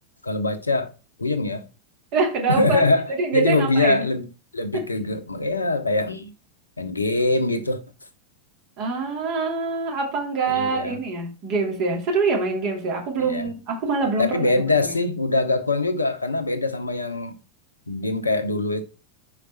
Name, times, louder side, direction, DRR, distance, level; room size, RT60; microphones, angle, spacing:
voice 1, 0.2-0.9 1.2-1.6 2.5-4.3 4.5-6.3 6.8-7.8 10.5-11.0 13.2-13.5 14.2-17.3 17.9-18.8, left 2 dB, 80° left, 0.9 m, -23 dB
voice 2, 2.1-2.8 3.2-4.0 4.7-4.8 8.8-14.4, right 4 dB, 45° right, 2.5 m, -24 dB
5.1 x 4.9 x 5.6 m
figure-of-eight pair, 90°, 0 cm